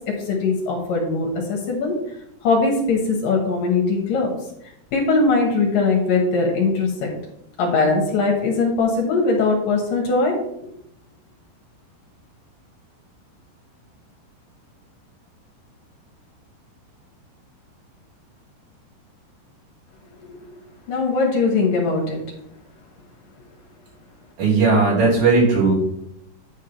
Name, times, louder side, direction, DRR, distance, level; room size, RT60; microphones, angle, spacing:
voice 1, 0.3-1.9 2.4-4.3 4.9-7.1 7.6-10.3 20.3-20.4 20.9-22.2, left 3 dB, 65° left, 0 dB, 2.6 m, -20 dB
voice 2, 24.4-25.7, right 3 dB, 80° right, -8 dB, 5.8 m, -17 dB
9.6 x 3.6 x 5.7 m, 0.75 s
omnidirectional pair, 4.9 m